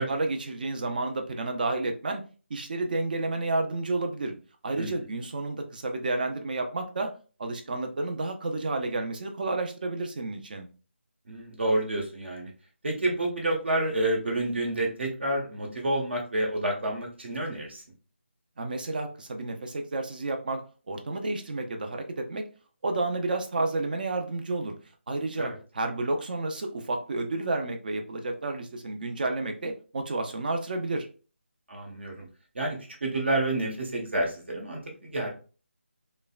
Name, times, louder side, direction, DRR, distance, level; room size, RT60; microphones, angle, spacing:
voice 1, 0.0-2.2 2.5-4.3 4.6-7.1 7.4-10.7 18.6-22.4 22.8-24.7 25.1-31.1, right 2 dB, 45° right, 5 dB, 0.6 m, -31 dB
voice 2, 11.3-12.5 12.8-17.8 25.4-25.6 31.7-32.3 32.5-35.3, right 1 dB, 60° right, 0 dB, 1.4 m, -29 dB
5.1 x 2.2 x 2.4 m, 0.37 s
figure-of-eight pair, 160°, 7 cm